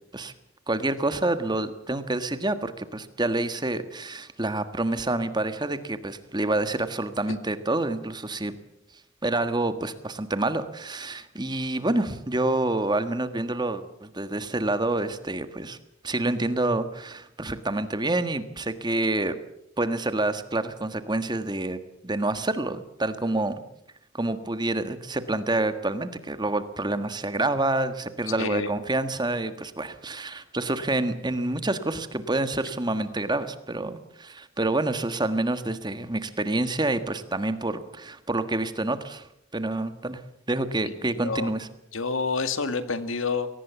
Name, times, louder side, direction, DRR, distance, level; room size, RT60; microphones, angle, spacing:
voice 1, 0.7-8.5 9.2-15.8 16.0-19.4 19.8-23.5 24.1-39.3 39.5-40.2 40.5-41.7, right 2 dB, 20° right, 11 dB, 1.5 m, -28 dB
voice 2, 28.4-28.7 41.2-41.5 41.9-43.5, left 4 dB, 80° left, 11 dB, 2.0 m, -28 dB
23.5 x 18.0 x 7.3 m, 0.78 s
head